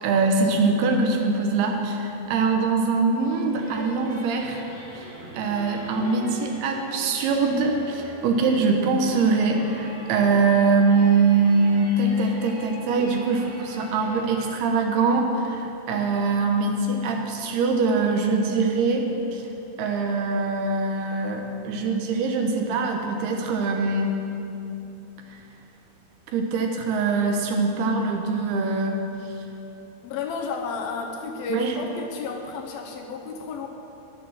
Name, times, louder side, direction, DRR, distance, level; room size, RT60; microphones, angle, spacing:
voice 1, 0.0-4.6 4.9-5.1 5.3-19.4 19.8-24.2 26.3-29.0 31.5-31.7, right 4 dB, 80° right, 3 dB, 2.9 m, -23 dB
sound 1, 3.4-14.6, right 1 dB, 50° right, 4.2 m, -42 dB
voice 2, 30.0-33.7, left 5 dB, 75° left, 1 dB, 2.5 m, -32 dB
11.0 x 8.5 x 6.3 m, 3.0 s
omnidirectional pair, 4.6 m